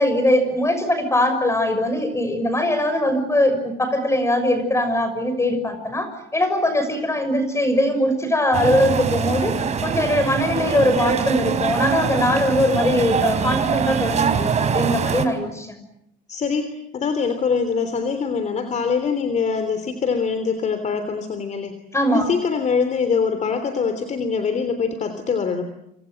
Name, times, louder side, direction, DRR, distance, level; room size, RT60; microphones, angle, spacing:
voice 1, 0.0-9.5 9.8-15.8 21.9-22.3, left 1 dB, 15° left, 9 dB, 6.0 m, -21 dB
sound 1, 8.5-15.2, right 6 dB, 40° right, 4.1 m, -23 dB
voice 2, 16.3-21.7 22.1-25.6, left 5 dB, 45° left, 9 dB, 3.3 m, -23 dB
28.5 x 27.0 x 7.8 m, 0.78 s
cardioid pair, 110°, 17 cm